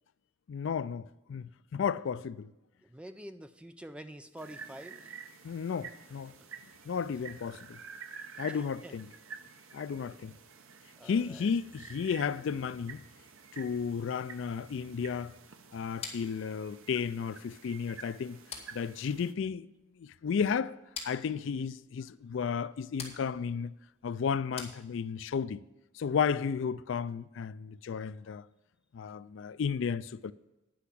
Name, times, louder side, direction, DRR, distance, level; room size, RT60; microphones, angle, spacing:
voice 1, 0.5-2.5 5.4-6.3 6.9-7.8 8.4-9.1 9.7-10.3 11.0-13.0 13.5-15.3 15.7-18.4 18.7-19.7 20.0-20.8 21.0-23.7 24.0-25.6 25.9-28.5 28.9-30.3, left 6 dB, 65° left, 0.3 m, -33 dB
voice 2, 2.8-5.2 6.4-6.5 8.5-9.0 9.5-10.2 11.0-11.5, right 1 dB, 5° right, 0.4 m, -48 dB
sound 1, 4.4-19.3, right 6 dB, 80° right, 0.9 m, -50 dB
sound 2, 16.0-25.4, left 5 dB, 30° left, 2.1 m, -48 dB
10.5 x 5.7 x 8.4 m
head